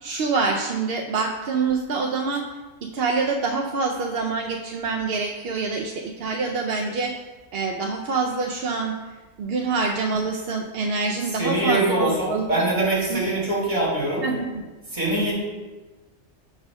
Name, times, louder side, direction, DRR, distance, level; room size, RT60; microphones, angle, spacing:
voice 1, 0.0-2.5 2.8-7.1 7.5-9.0 9.4-12.7 13.1-13.5 14.2-14.6, right 4 dB, 60° right, 2 dB, 0.7 m, -26 dB
voice 2, 11.4-14.2 14.9-15.3, right 2 dB, 35° right, -7 dB, 2.8 m, -23 dB
6.2 x 4.1 x 6.0 m, 1.2 s
omnidirectional pair, 1.3 m